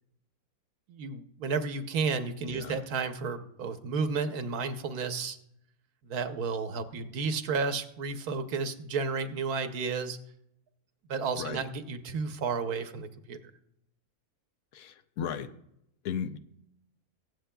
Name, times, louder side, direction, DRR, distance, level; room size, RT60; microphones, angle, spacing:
voice 1, 0.9-5.4 6.0-10.2 11.1-13.4, right 4 dB, 80° right, 8 dB, 1.3 m, -32 dB
voice 2, 2.5-2.8 11.4-11.6 14.7-15.5 16.0-16.4, left 8 dB, 70° left, 11 dB, 1.0 m, -35 dB
23.5 x 8.0 x 2.3 m, 0.77 s
omnidirectional pair, 1.6 m